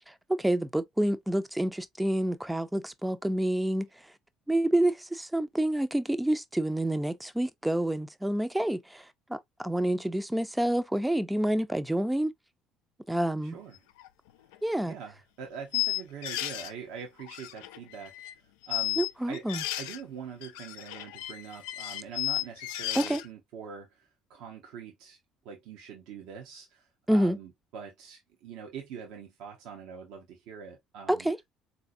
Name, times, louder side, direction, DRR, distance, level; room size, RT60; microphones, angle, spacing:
voice 1, 0.1-3.9 4.5-9.0 9.3-12.3 13.1-13.6 14.6-14.9 19.0-19.6 23.0-23.2 27.1-27.4 31.1-31.4, right 1 dB, 5° right, 0.5 m, -28 dB
voice 2, 13.4-13.8 14.9-18.3 18.7-19.4 19.8-25.2 25.4-31.3, right 7 dB, 70° right, 0.8 m, -44 dB
sound 1, 14.0-14.1 14.5-14.6 15.7-16.7 17.2-18.3 18.6-20.0 20.4-23.3, left 16 dB, 75° left, 0.3 m, -33 dB
3.9 x 2.7 x 2.5 m
hypercardioid pair, 60°, 0 cm